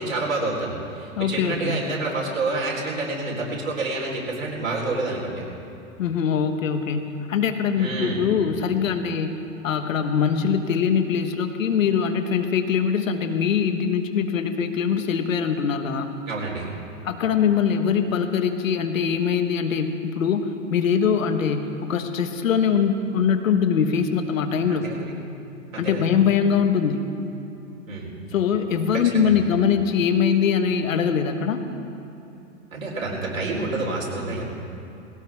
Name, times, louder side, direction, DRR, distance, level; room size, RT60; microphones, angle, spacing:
voice 1, 0.0-5.3 7.8-8.2 16.3-16.7 24.7-25.0 25.7-26.0 27.9-28.1 28.9-29.3 32.7-34.4, right 2 dB, 85° right, -3 dB, 4.3 m, -28 dB
voice 2, 1.2-1.9 6.0-9.4 9.6-16.1 17.0-24.9 25.8-27.1 28.3-31.6, left 7 dB, 80° left, 7 dB, 1.5 m, -22 dB
20.5 x 17.0 x 3.6 m, 2.8 s
hypercardioid pair, 115°, 40 cm